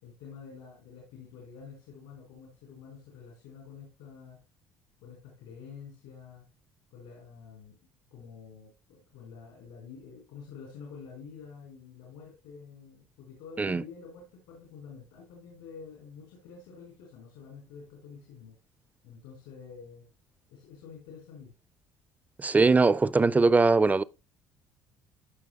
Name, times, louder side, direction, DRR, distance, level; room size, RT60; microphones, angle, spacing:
voice 1, 0.0-4.4 5.0-6.4 6.9-7.8 8.1-18.5 19.0-20.0 20.5-21.5, left 6 dB, 85° left, 4.8 m, -48 dB
voice 2, 22.4-24.0, right 3 dB, 20° right, 0.4 m, -21 dB
15.5 x 6.0 x 2.4 m
supercardioid pair, 75°, 8 cm